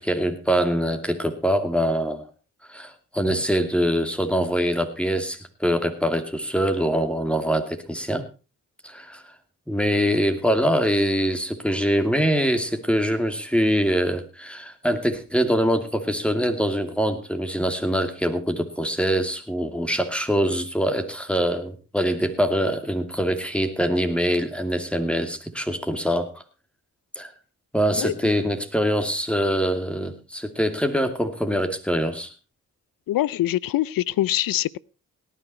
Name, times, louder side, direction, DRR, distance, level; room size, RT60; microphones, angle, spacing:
voice 1, 0.0-2.2 2.7-8.3 8.8-9.2 9.7-26.3 27.2-27.3 27.7-32.3, equal, 5° left, 7 dB, 2.6 m, -24 dB
voice 2, 28.0-28.3 33.1-34.8, left 14 dB, 70° left, 24 dB, 0.6 m, -24 dB
18.0 x 10.0 x 4.3 m, 0.32 s
supercardioid pair, 50°, 35 cm